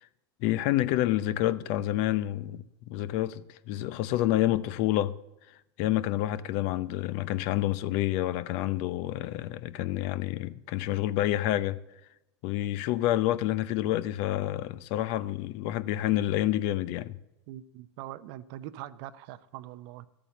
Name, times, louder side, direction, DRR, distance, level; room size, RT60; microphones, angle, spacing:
voice 1, 0.4-5.1 5.8-11.8 12.4-17.2, left 14 dB, 50° left, 0.6 m, -28 dB
voice 2, 17.5-20.1, right 13 dB, 55° right, 0.7 m, -42 dB
12.5 x 8.7 x 7.0 m
hypercardioid pair, 100°, 15 cm